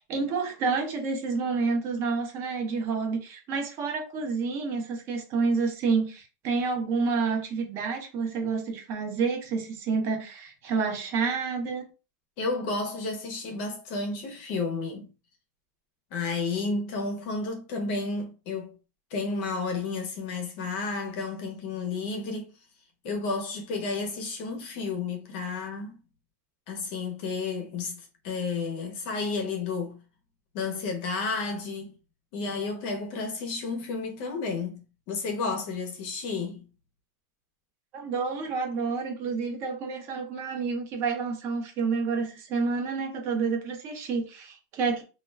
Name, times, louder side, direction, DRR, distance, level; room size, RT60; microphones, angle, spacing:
voice 1, 0.1-11.8 37.9-45.0, right 4 dB, 25° right, 0.5 m, -29 dB
voice 2, 12.4-15.1 16.1-18.8 19.1-22.5 23.0-26.0 26.7-28.0 28.2-30.0 30.5-32.0 32.3-34.8 35.1-36.6, left 4 dB, 35° left, 0.6 m, -31 dB
2.2 x 2.2 x 3.2 m
supercardioid pair, 180°, 10 cm